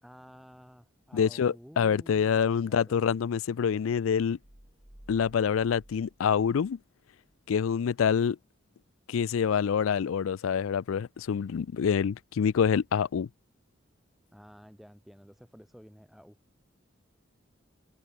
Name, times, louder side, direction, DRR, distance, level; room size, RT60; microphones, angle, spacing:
voice 1, 0.0-3.1 14.3-16.4, equal, ahead, 3.7 m, -52 dB
voice 2, 1.1-4.4 5.1-6.8 7.5-8.4 9.1-13.3, left 7 dB, 85° left, 0.4 m, -26 dB
sound 1, 4.4-7.4, equal, 20° right, 2.1 m, -55 dB
head